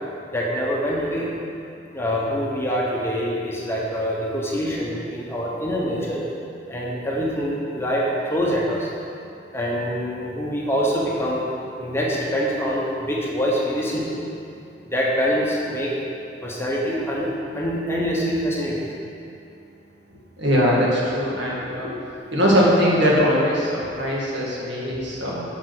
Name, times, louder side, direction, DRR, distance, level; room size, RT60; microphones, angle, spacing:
voice 1, 0.3-1.3 1.9-6.2 6.7-8.0 8.3-8.9 9.5-11.4 11.8-14.2 14.9-15.9 16.4-17.3 17.5-18.9, equal, 15° left, -4 dB, 1.0 m, -25 dB
voice 2, 20.4-22.0 22.3-25.4, equal, 75° right, -5 dB, 1.8 m, -21 dB
6.3 x 5.3 x 6.1 m, 2.7 s
head